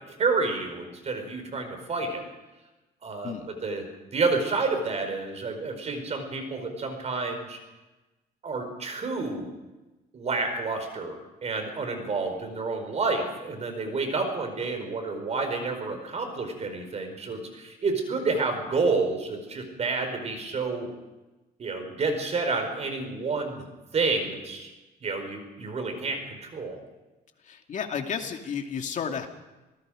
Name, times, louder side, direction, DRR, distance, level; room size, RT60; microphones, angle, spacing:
voice 1, 0.2-2.2 3.0-7.6 8.4-9.5 10.1-20.9 21.6-23.6 23.9-24.7 25.0-26.8, right 3 dB, 40° right, 6 dB, 4.8 m, -29 dB
voice 2, 27.4-29.3, left 7 dB, 45° left, 4 dB, 2.5 m, -32 dB
27.0 x 19.0 x 5.1 m, 1.1 s
cardioid pair, 110°, 17 cm